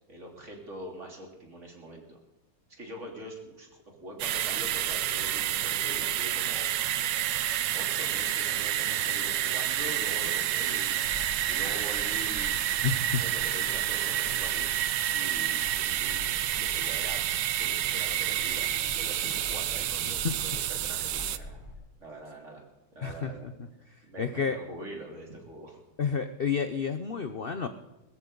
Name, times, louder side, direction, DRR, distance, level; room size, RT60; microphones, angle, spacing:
voice 1, 0.1-2.2 2.7-6.7 7.7-11.0 11.5-12.6 13.2-14.7 15.1-16.3 16.6-21.6 22.0-22.6 22.9-23.5 24.0-25.8, right 1 dB, 35° right, 0 dB, 3.6 m, -43 dB
sound 1, 4.2-21.4, right 12 dB, 70° right, 1.3 m, -29 dB
sound 2, 10.6-21.7, left 3 dB, 15° left, 5.1 m, -46 dB
voice 2, 12.8-13.2 20.1-20.3 23.0-23.5 24.2-24.6 26.0-27.7, left 6 dB, 55° left, 9 dB, 0.6 m, -30 dB
21.5 x 14.0 x 3.9 m, 1.0 s
omnidirectional pair, 2.1 m